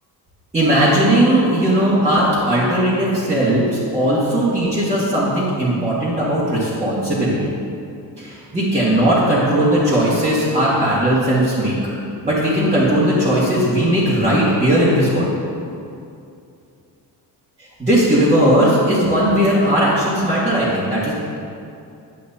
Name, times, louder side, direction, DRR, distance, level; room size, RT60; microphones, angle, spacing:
voice 1, 0.5-3.6 3.9-7.4 8.2-11.7 12.2-15.3 17.8-21.1, right 1 dB, 20° right, -10 dB, 1.8 m, -17 dB
10.5 x 8.3 x 2.8 m, 2.5 s
cardioid pair, 150°, 39 cm